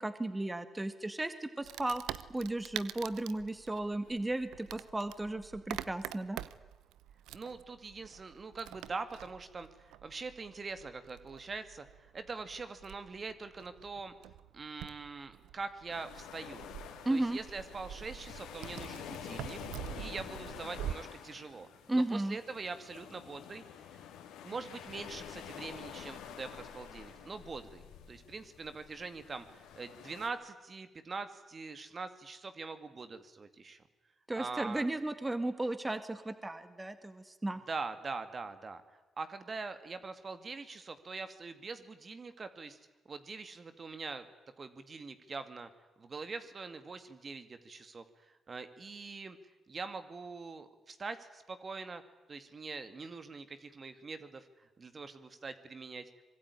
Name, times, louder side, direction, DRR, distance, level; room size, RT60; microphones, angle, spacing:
voice 1, 0.0-6.4 17.1-17.4 21.9-22.4 34.3-37.6, right 2 dB, 20° right, 10 dB, 2.0 m, -35 dB
Wood, 1.6-20.9, right 12 dB, 85° right, 0.8 m, -46 dB
voice 2, 7.3-14.2 14.5-16.7 17.1-19.6 20.0-21.7 21.9-23.6 23.9-24.0 24.4-27.8 28.1-33.8 34.4-34.9 37.7-38.8 39.2-42.8 43.1-44.3 44.6-45.7 46.0-49.4 49.7-52.0 52.3-56.0, right 4 dB, 45° right, 10 dB, 2.2 m, -43 dB
sound 1, 15.9-30.3, left 9 dB, 85° left, 3.1 m, -48 dB
24.5 x 21.5 x 9.8 m, 1.2 s
supercardioid pair, 60°, 0 cm